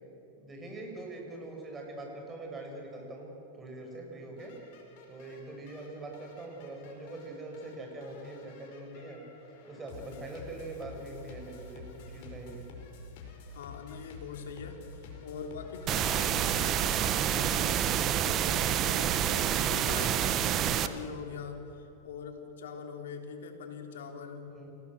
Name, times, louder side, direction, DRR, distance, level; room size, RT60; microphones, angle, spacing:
voice 1, 0.4-3.3 3.6-4.5 5.1-9.2 9.6-12.6 24.5-24.7, right 2 dB, 15° right, 1 dB, 6.7 m, -43 dB
sound 1, 4.4-17.5, left 4 dB, 60° left, 5.3 m, -49 dB
voice 2, 13.5-24.6, left 5 dB, 80° left, 4 dB, 3.6 m, -43 dB
sound 2, 15.9-20.9, right 10 dB, 35° right, 1.1 m, -28 dB
28.5 x 18.0 x 7.7 m, 3.0 s
hypercardioid pair, 130°, 0 cm